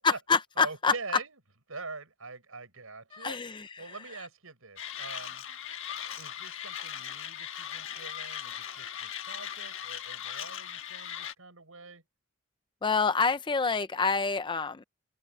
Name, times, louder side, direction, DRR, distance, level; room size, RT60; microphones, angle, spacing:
voice 1, 0.0-0.9 3.1-3.9 12.8-14.8, left 4 dB, 25° left, 0.5 m, -27 dB
voice 2, 0.6-1.4 1.7-3.4 3.8-5.4 6.2-12.0, right 4 dB, 80° right, 6.0 m, -44 dB
Mechanisms, 4.8-11.3, left 9 dB, 65° left, 1.4 m, -39 dB
open air
head